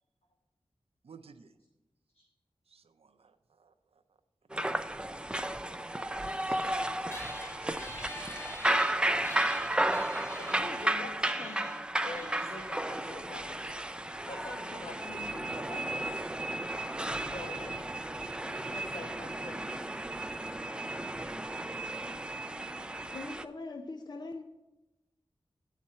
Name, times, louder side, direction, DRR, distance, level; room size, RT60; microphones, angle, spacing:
voice 1, 1.0-1.5 2.7-4.0 5.2-5.6 6.2-8.6 8.8-8.9, right 5 dB, 80° right, 8 dB, 0.5 m, -53 dB
sound 1, 4.5-23.4, right 1 dB, 10° right, 0.3 m, -33 dB
sound 2, 7.1-13.9, left 1 dB, 25° left, 0.9 m, -47 dB
voice 2, 10.3-11.7 12.0-13.9 14.3-16.3 17.3-17.9 18.7-19.7, left 2 dB, 75° left, 1 dB, 1.0 m, -45 dB
voice 3, 23.1-24.4, left 3 dB, 45° left, 6 dB, 0.5 m, -41 dB
10.0 x 4.2 x 7.4 m, 1.0 s
wide cardioid pair, 80°, 10 cm